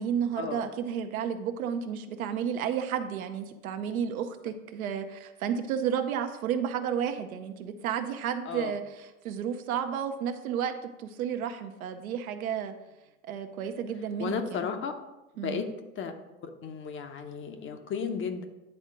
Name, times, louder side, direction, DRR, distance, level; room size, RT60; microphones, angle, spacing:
voice 1, 0.0-12.7 13.3-14.6 15.4-15.6, right 8 dB, 80° right, 6 dB, 0.8 m, -32 dB
voice 2, 14.2-14.9 15.4-15.7 16.0-18.4, left 6 dB, 30° left, 7 dB, 0.7 m, -34 dB
9.8 x 3.6 x 3.7 m, 1.0 s
hypercardioid pair, 90°, 42 cm